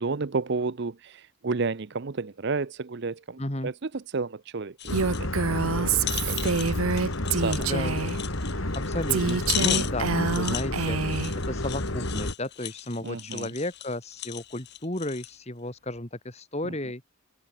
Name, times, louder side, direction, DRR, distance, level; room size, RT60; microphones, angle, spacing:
voice 1, 0.0-4.9 5.2-6.5 7.2-7.7 13.0-13.5, right 4 dB, 50° right, 0.6 m, -32 dB
voice 2, 3.4-3.7 7.6-8.0 8.7-17.0, left 1 dB, 30° left, 2.3 m, -33 dB
sound 1, 4.8-5.3 5.6-5.7 6.0-15.4 15.9-16.0, left 13 dB, 50° left, 1.4 m, -36 dB
sound 2, 4.9-12.3, left 1 dB, 65° left, 2.7 m, -30 dB
Female speech woman speaking, 4.9-8.2 9.1-11.3, right 5 dB, 75° right, 1.0 m, -27 dB
head